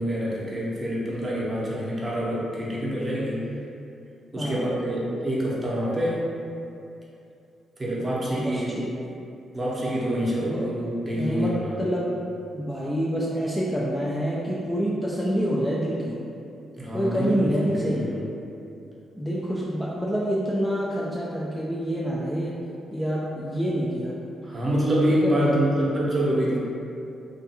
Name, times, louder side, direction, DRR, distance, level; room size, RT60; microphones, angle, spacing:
voice 1, 0.0-3.5 4.3-6.3 7.8-8.7 9.5-11.8 16.7-18.3 24.4-26.6, equal, 25° right, -6 dB, 0.7 m, -26 dB
voice 2, 8.3-8.9 10.4-10.6 11.1-12.2 12.5-16.2 16.9-18.1 19.2-22.6 22.9-24.1 25.1-25.5, equal, 5° left, -6 dB, 0.3 m, -27 dB
2.4 x 2.3 x 2.8 m, 2.7 s
cardioid pair, 80°, 0 cm